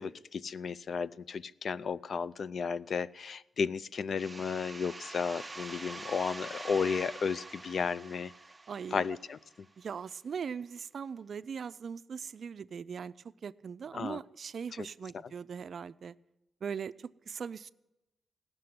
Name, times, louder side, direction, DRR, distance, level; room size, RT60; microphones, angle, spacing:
voice 1, 0.0-8.3 8.9-9.7 13.9-14.2, left 5 dB, 60° left, 0.4 m, -34 dB
sound 1, 4.2-9.6, right 2 dB, 20° right, 0.6 m, -45 dB
voice 2, 8.7-9.1 9.8-13.1 13.4-16.2 16.6-17.7, right 6 dB, 65° right, 0.4 m, -40 dB
16.5 x 6.7 x 9.5 m
cardioid pair, 85°, 0 cm